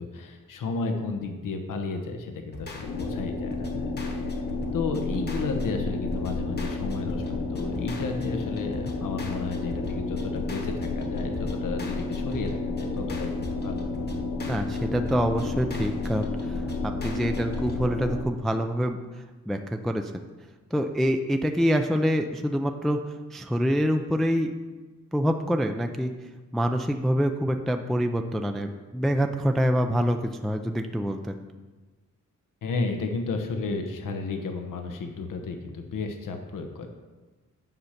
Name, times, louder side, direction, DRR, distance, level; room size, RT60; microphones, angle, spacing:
voice 1, 0.0-4.2 4.7-13.8 32.6-36.9, left 3 dB, 90° left, 5 dB, 1.1 m, -33 dB
sound 1, 2.5-17.9, left 2 dB, 30° left, 1.2 m, -40 dB
sound 2, 2.8-18.2, left 3 dB, 70° left, 1.6 m, -31 dB
voice 2, 14.5-20.2 20.7-24.5 25.1-31.4, equal, ahead, 5 dB, 0.3 m, -26 dB
9.6 x 6.5 x 5.8 m, 1.3 s
wide cardioid pair, 175°, 31 cm